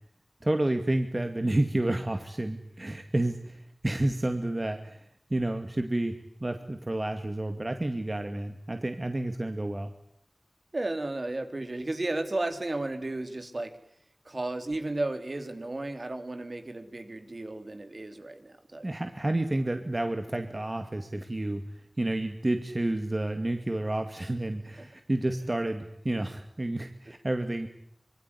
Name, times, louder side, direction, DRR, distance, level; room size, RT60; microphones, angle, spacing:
voice 1, 0.4-9.9 18.8-27.7, right 1 dB, 40° right, 6 dB, 2.3 m, -30 dB
voice 2, 10.7-13.7 14.3-18.9 24.8-24.9, right 2 dB, 55° right, 7 dB, 3.6 m, -33 dB
26.0 x 22.5 x 9.9 m, 0.72 s
wide cardioid pair, 45°, 0 cm